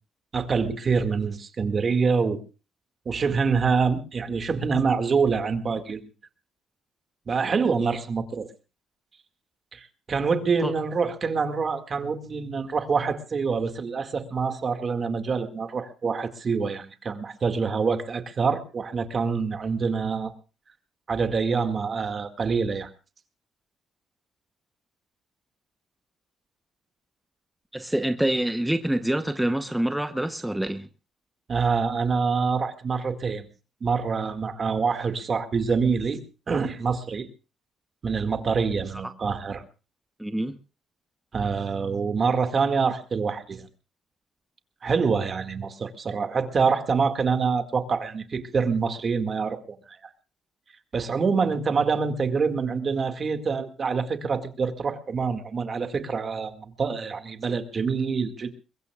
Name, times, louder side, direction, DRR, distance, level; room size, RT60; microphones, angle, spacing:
voice 1, 0.3-2.4 3.1-6.0 7.3-8.5 9.7-20.3 21.1-22.9 31.5-33.5 33.8-36.2 36.5-37.3 38.0-39.6 41.3-43.7 44.8-50.0 50.9-58.5, right 5 dB, 45° right, 2.0 m, -26 dB
voice 2, 27.7-30.9 39.0-39.1 40.2-40.5, right 1 dB, 5° right, 0.9 m, -26 dB
22.5 x 21.5 x 2.4 m
cardioid pair, 90°, 0 cm